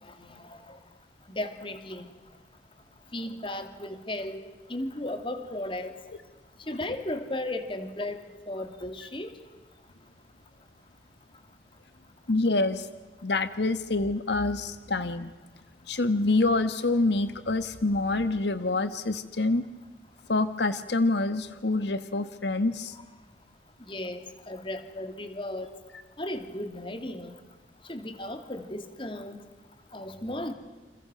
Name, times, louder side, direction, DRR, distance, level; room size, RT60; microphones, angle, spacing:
voice 1, 0.0-0.8 1.3-2.1 3.1-4.4 4.7-5.9 6.7-9.3 22.9-23.0 23.8-25.7 26.2-27.4 27.8-29.4 29.9-30.5, left 1 dB, 30° left, 8 dB, 2.5 m, -35 dB
voice 2, 12.3-12.9 13.2-15.3 15.9-19.6 20.3-23.0, left 2 dB, 75° left, 11 dB, 1.3 m, -26 dB
29.5 x 28.0 x 6.2 m, 1.3 s
head